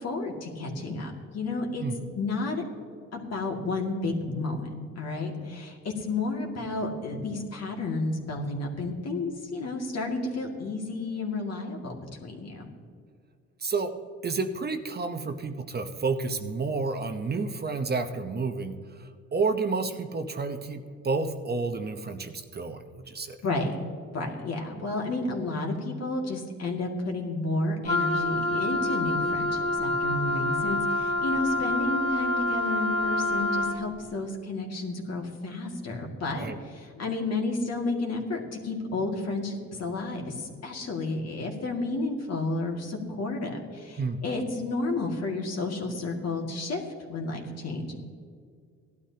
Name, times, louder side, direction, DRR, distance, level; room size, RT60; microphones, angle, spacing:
voice 1, 0.0-1.8 2.2-2.6 3.1-4.7 5.0-12.0 12.2-12.7 23.4-23.8 24.1-46.8 47.1-48.0, left 2 dB, 55° left, 1 dB, 2.3 m, -31 dB
voice 2, 13.6-13.9 14.2-23.4 36.4-36.6 44.0-44.2, right 4 dB, 35° right, 7 dB, 0.9 m, -30 dB
Wind instrument woodwind instrument, 27.8-33.8, left 2 dB, 20° left, 1.6 m, -27 dB
17.0 x 12.0 x 2.9 m, 2.1 s
cardioid pair, 90°, 30 cm